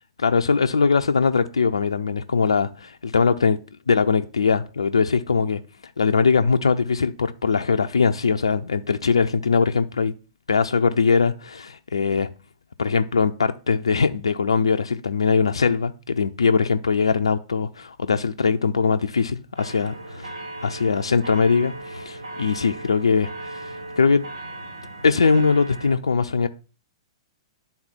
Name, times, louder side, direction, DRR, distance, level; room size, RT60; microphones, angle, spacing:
voice 1, 0.2-3.6 3.9-5.6 6.0-10.1 10.5-12.3 12.8-20.3 20.6-24.2 25.0-26.5, left 5 dB, 75° left, 0.6 m, -21 dB
sound 1, 19.6-26.0, right 2 dB, 70° right, 1.3 m, -37 dB
11.0 x 3.9 x 4.4 m
figure-of-eight pair, 110°, 3 cm